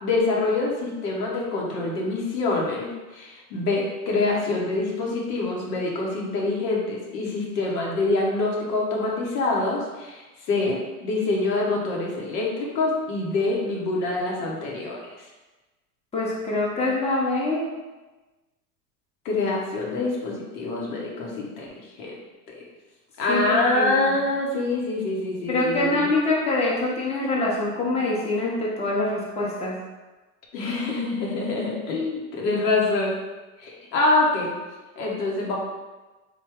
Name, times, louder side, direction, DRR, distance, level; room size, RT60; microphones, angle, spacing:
voice 1, 0.0-10.2 10.5-15.0 19.2-22.2 22.5-22.6 23.2-26.1 30.5-33.2 33.6-34.5 35.0-35.6, left 2 dB, 75° left, -2 dB, 1.0 m, -25 dB
voice 2, 16.1-17.6 23.3-24.1 25.5-29.8 30.6-30.8, left 2 dB, 15° left, -5 dB, 0.7 m, -25 dB
3.3 x 2.2 x 3.4 m, 1.2 s
hypercardioid pair, 95°, 50 cm